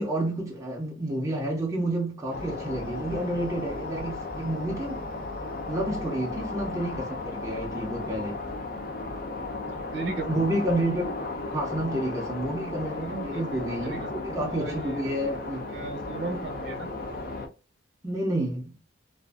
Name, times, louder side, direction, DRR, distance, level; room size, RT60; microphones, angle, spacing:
voice 1, 0.0-5.1 5.7-8.4 10.2-11.1 11.5-15.6 18.0-18.7, right 1 dB, 15° right, 0.5 m, -30 dB
sound 1, 2.3-17.5, left 2 dB, 50° left, 0.4 m, -35 dB
voice 2, 9.9-10.4 13.0-15.0 15.7-16.9, right 3 dB, 65° right, 0.7 m, -36 dB
2.5 x 2.3 x 2.3 m
head